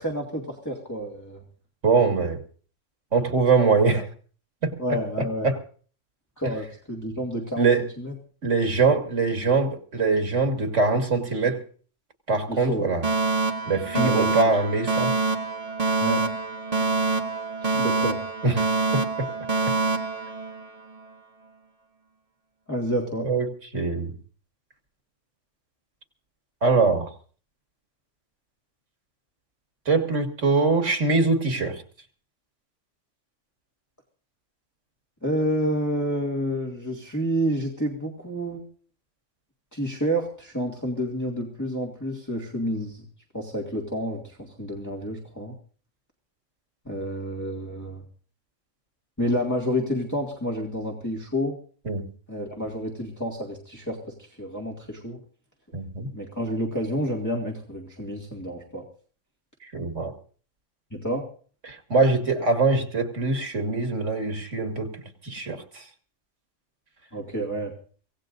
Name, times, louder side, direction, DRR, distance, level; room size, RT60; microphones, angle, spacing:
voice 1, 0.0-1.4 4.8-5.5 6.4-7.7 8.0-8.1 12.5-12.9 13.9-14.3 16.0-16.3 17.6-18.2 22.7-23.3 35.2-38.6 39.7-43.0 43.3-45.5 46.9-48.0 49.2-51.6 52.3-54.0 54.4-55.2 56.1-58.9 60.9-61.2 67.1-67.7, equal, 15° left, -3 dB, 2.2 m, -29 dB
voice 2, 1.8-2.4 3.1-4.1 4.6-4.8 5.4-5.6 7.6-7.9 8.4-11.6 12.3-13.1 13.7-15.1 18.4-18.7 18.9-19.3 23.2-23.5 23.7-24.1 26.6-27.1 29.9-31.8 51.9-52.1 55.7-56.1 59.7-60.1 61.6-64.9 65.2-65.8, right 4 dB, 75° right, 5 dB, 2.4 m, -23 dB
Alarm, 13.0-21.0, right 3 dB, 30° right, 1.6 m, -26 dB
24.5 x 17.5 x 2.6 m, 0.43 s
omnidirectional pair, 1.2 m